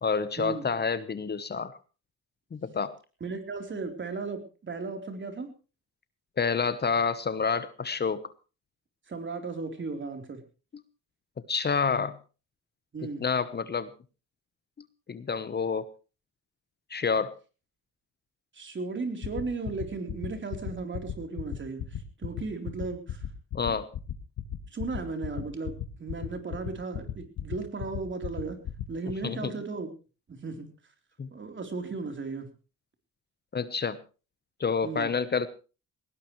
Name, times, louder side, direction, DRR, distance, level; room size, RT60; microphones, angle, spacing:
voice 1, 0.0-1.7 2.5-3.0 6.4-8.2 11.5-12.2 13.2-13.9 15.1-15.9 16.9-17.3 23.5-23.9 29.2-29.5 31.2-31.3 33.5-34.0 34.6-35.5, left 5 dB, 35° left, 14 dB, 1.0 m, -28 dB
voice 2, 3.2-5.5 9.1-10.4 12.9-13.3 18.5-23.2 23.7-23.8 24.7-28.6 28.9-29.9 30.3-30.7 31.3-32.5 34.8-35.1, right 4 dB, 40° right, 6 dB, 3.7 m, -36 dB
sound 1, 19.2-29.1, left 11 dB, 65° left, 1.7 m, -34 dB
19.0 x 18.0 x 3.2 m, 0.34 s
cardioid pair, 90°, 30 cm